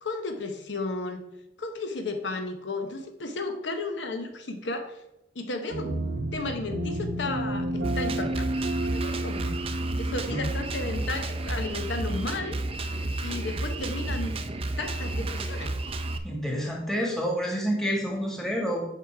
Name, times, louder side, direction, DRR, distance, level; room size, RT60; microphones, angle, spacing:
voice 1, 0.0-1.2 1.6-5.0 5.3-6.0 6.3-8.4 8.9-9.6 10.0-12.6 13.2-14.4 14.8-15.7, left 3 dB, 70° left, 6 dB, 0.9 m, -33 dB
sound 1, 5.7-12.3, right 1 dB, 60° right, 0.9 m, -32 dB
Drum kit, 7.8-16.2, right 2 dB, 30° right, 0.5 m, -31 dB
voice 2, 16.2-18.9, equal, 5° left, -2 dB, 1.8 m, -28 dB
8.3 x 5.3 x 4.6 m, 0.87 s
head